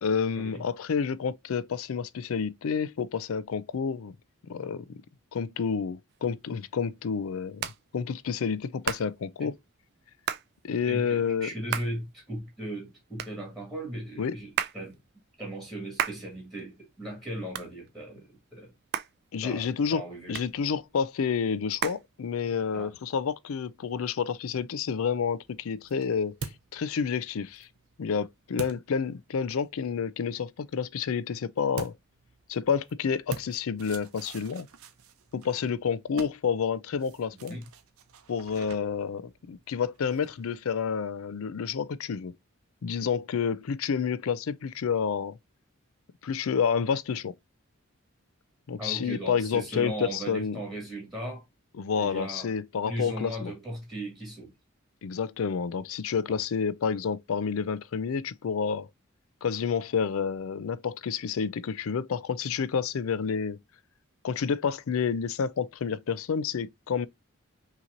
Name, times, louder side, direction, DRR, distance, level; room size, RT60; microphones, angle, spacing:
voice 1, 0.0-4.2 4.5-4.8 5.3-9.5 10.6-11.5 14.2-14.3 19.3-20.0 20.3-26.3 26.7-27.7 28.0-31.9 32.5-34.7 35.3-37.6 38.3-42.3 42.8-45.4 46.2-47.3 48.7-50.6 51.8-53.5 55.0-58.9 59.4-63.6 64.2-67.1, left 6 dB, 80° left, 0.4 m, -29 dB
Hands, 6.1-22.8, right 9 dB, 50° right, 0.3 m, -38 dB
voice 2, 10.8-15.0 15.4-18.7 19.4-20.4 22.7-22.9 37.5-37.6 38.6-38.7 48.8-51.4 52.0-52.5 52.8-54.5 56.3-56.4, right 1 dB, ahead, 1.9 m, -37 dB
sound 1, 25.3-29.7 31.7-40.6, right 4 dB, 90° right, 0.7 m, -46 dB
5.7 x 2.9 x 2.5 m
head